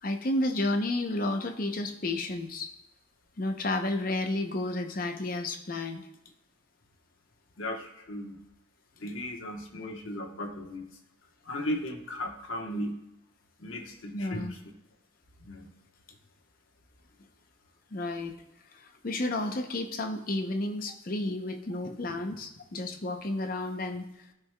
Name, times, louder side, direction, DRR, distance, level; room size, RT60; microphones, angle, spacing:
voice 1, 0.0-2.7 3.4-6.1 14.1-14.6 17.9-18.4 18.7-24.1, left 2 dB, 45° left, 6 dB, 0.7 m, -31 dB
voice 2, 7.6-8.4 9.0-10.9 11.4-13.0 13.6-14.6 15.4-15.7, left 1 dB, 90° left, 2 dB, 1.1 m, -36 dB
13.0 x 4.7 x 2.2 m, 0.86 s
head